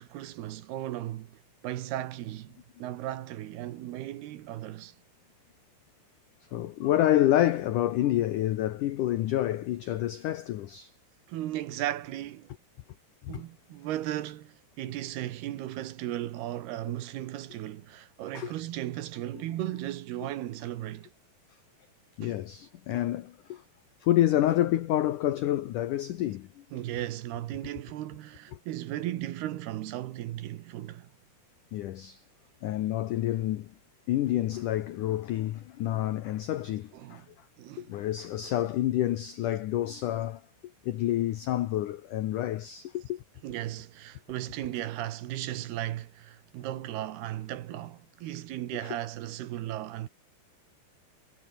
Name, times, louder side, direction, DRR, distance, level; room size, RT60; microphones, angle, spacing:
voice 1, 0.0-4.9 11.3-12.5 13.3-21.1 22.2-22.3 26.7-31.1 36.9-37.3 37.6-37.9 43.4-50.1, right 13 dB, 70° right, 3.0 m, -36 dB
voice 2, 6.5-10.9 13.2-13.4 18.3-18.5 22.2-23.6 24.0-26.6 28.5-28.6 31.7-32.2 32.6-33.7 34.1-37.2 37.8-40.4 40.8-43.2 48.8-49.0, left 13 dB, 80° left, 1.8 m, -28 dB
omnidirectional pair, 5.1 m